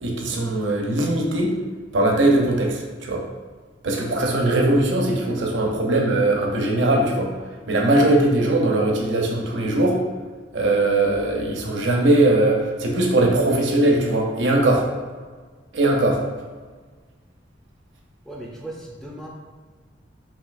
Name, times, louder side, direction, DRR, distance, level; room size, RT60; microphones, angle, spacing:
voice 1, 0.0-1.5 1.9-3.2 3.8-7.3 7.7-10.0 10.5-14.9 15.7-16.2, right 2 dB, 85° right, 0 dB, 0.7 m, -20 dB
voice 2, 18.3-19.3, right 1 dB, ahead, -2 dB, 0.4 m, -37 dB
5.4 x 2.8 x 2.4 m, 1.4 s
head